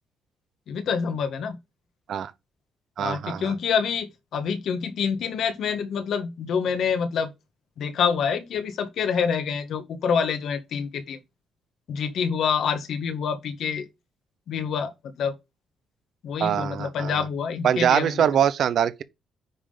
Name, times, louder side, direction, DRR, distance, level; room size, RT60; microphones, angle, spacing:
voice 1, 0.7-1.6 3.0-7.3 7.8-11.2 11.9-13.9 14.5-14.9 15.2-15.3 16.2-18.3, left 6 dB, 70° left, 1.7 m, -27 dB
voice 2, 3.0-3.5 16.4-17.2 17.6-19.0, right 9 dB, 65° right, 0.8 m, -23 dB
9.7 x 3.8 x 5.1 m
cardioid pair, 90°, 0 cm